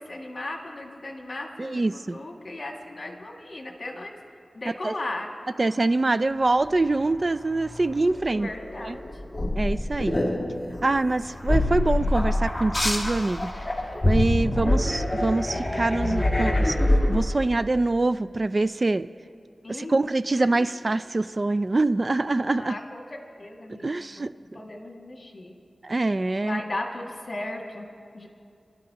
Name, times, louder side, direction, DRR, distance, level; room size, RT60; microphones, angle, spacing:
voice 1, 0.0-1.8 2.1-4.1 4.5-5.3 8.3-9.1 19.6-19.9 20.5-20.6 22.5-23.0 23.4-24.3 24.5-25.6 26.4-27.9 28.1-28.3, left 2 dB, 50° left, 0 dB, 2.0 m, -36 dB
voice 2, 1.6-2.2 4.8-4.9 5.6-8.5 8.8-9.0 9.5-10.2 10.8-13.5 14.0-19.1 19.7-22.8 23.8-24.3 25.8-26.6, right 2 dB, 40° right, 13 dB, 0.3 m, -25 dB
sound 1, 6.8-17.2, left 1 dB, 20° left, 2.0 m, -26 dB
27.5 x 12.5 x 2.9 m, 2.3 s
wide cardioid pair, 80°, 0 cm